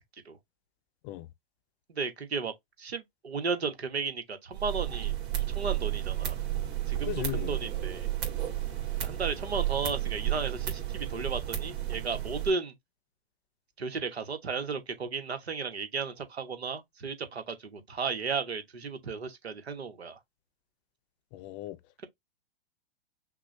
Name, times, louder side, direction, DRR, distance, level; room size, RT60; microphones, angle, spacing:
voice 1, 1.9-2.5 2.8-6.4 6.9-8.1 9.0-12.7 13.8-20.2, right 4 dB, 85° right, 1.3 m, -34 dB
sound 1, 4.5-12.5, right 13 dB, 35° right, 2.1 m, -32 dB
voice 2, 7.1-7.6 21.3-21.8, left 17 dB, 35° left, 0.6 m, -36 dB
6.0 x 2.4 x 3.2 m
hypercardioid pair, 115°, 31 cm